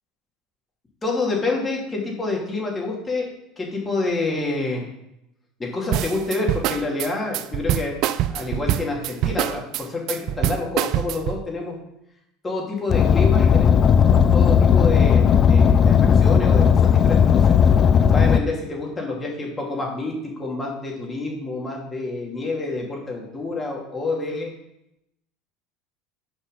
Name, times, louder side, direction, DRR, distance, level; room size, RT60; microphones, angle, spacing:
voice 1, 1.0-3.3 3.6-4.8 5.6-8.0 8.3-11.8 12.4-13.8 14.3-17.6 18.1-24.5, left 3 dB, 20° left, -1 dB, 2.9 m, -28 dB
sound 1, 5.9-11.4, right 12 dB, 60° right, 0.4 m, -24 dB
Car, 12.9-18.4, left 7 dB, 40° left, 0.5 m, -15 dB
7.2 x 5.4 x 6.8 m, 0.83 s
hypercardioid pair, 80°, 0 cm